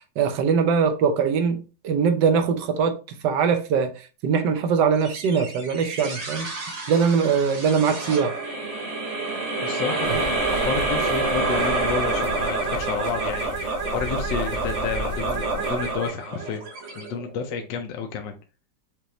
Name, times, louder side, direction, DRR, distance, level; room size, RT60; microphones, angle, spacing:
voice 1, 0.2-3.0 3.2-3.9 4.2-6.5 6.9-8.3 10.1-10.2, right 6 dB, 70° right, 1.4 m, -21 dB
sound 1, 5.0-17.6, right 3 dB, 50° right, 1.0 m, -28 dB
voice 2, 9.6-16.6 17.0-18.3, left 6 dB, 80° left, 1.3 m, -31 dB
sound 2, 10.0-16.1, left 1 dB, 55° left, 1.2 m, -35 dB
5.3 x 3.0 x 3.1 m
omnidirectional pair, 2.0 m